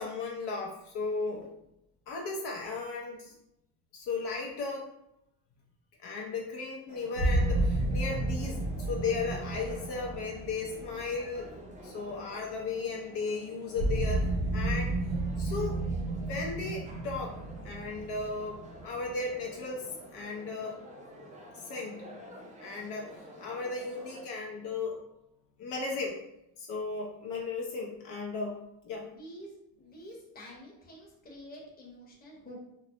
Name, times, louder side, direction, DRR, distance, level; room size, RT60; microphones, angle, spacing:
voice 1, 0.0-1.5 2.1-3.3 3.9-4.9 6.0-11.5 11.8-14.9 15.4-15.8 16.2-17.4 17.6-20.8 21.6-22.2 22.6-25.0 25.6-26.2 26.6-29.1, left 4 dB, 65° left, -1 dB, 0.6 m, -36 dB
sound 1, 6.9-24.2, equal, 20° right, 0.4 m, -50 dB
sound 2, 7.2-12.1 13.8-19.4, right 2 dB, 90° right, 0.6 m, -32 dB
voice 2, 28.9-32.6, equal, 20° left, -3 dB, 0.8 m, -48 dB
2.2 x 2.0 x 2.7 m, 0.82 s
cardioid pair, 95°, 43 cm